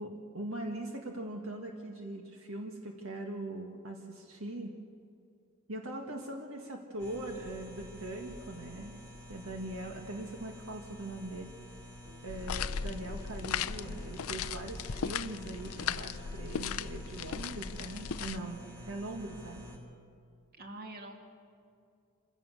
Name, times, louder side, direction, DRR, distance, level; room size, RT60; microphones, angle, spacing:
voice 1, 0.0-4.7 5.7-9.0 9.3-11.5 12.2-19.6, right 1 dB, 70° right, 2 dB, 1.8 m, -41 dB
sound 1, 7.0-19.8, left 1 dB, 15° right, 2.7 m, -50 dB
sound 2, 12.0-19.7, equal, 90° right, 3.2 m, -56 dB
sound 3, 12.3-18.4, left 7 dB, 80° left, 0.5 m, -37 dB
voice 2, 18.6-19.0 20.6-21.2, right 2 dB, 45° right, 2 dB, 2.5 m, -47 dB
26.5 x 16.5 x 6.6 m, 2.4 s
head